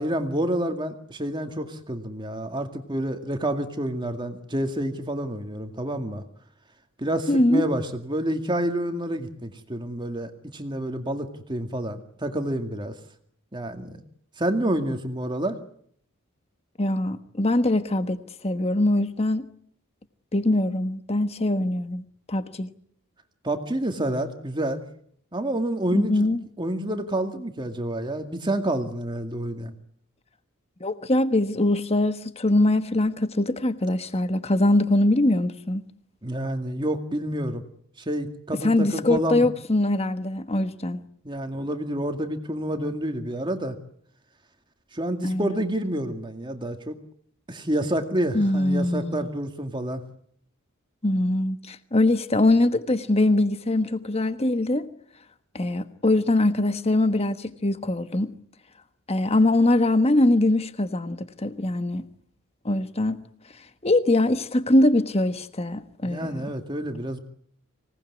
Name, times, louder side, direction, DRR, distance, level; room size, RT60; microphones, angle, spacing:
voice 1, 0.0-6.2 7.0-13.0 13.5-14.0 14.4-15.6 23.4-24.8 25.3-26.3 26.6-29.7 36.2-37.6 38.0-39.5 41.2-43.8 44.9-47.0 47.5-50.0 66.1-67.2, right 1 dB, 20° right, 2.2 m, -28 dB
voice 2, 7.3-7.7 16.8-18.2 18.4-19.4 20.3-22.7 25.9-26.4 30.8-35.8 38.6-41.0 45.2-45.6 48.3-49.3 51.0-54.9 55.5-58.3 59.1-62.0 62.6-63.2 63.8-66.4, left 1 dB, 30° left, 1.3 m, -22 dB
26.0 x 19.0 x 9.6 m
head